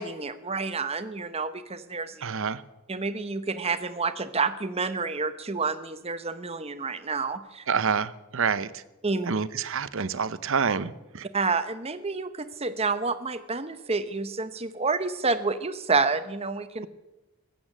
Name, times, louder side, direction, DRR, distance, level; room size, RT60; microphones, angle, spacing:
voice 1, 0.0-2.3 2.9-7.6 9.0-9.3 11.3-16.9, right 4 dB, 25° right, 11 dB, 0.9 m, -29 dB
voice 2, 2.2-2.6 7.7-8.8 9.3-11.3, right 6 dB, 60° right, 16 dB, 0.7 m, -27 dB
21.0 x 8.6 x 7.4 m, 0.99 s
head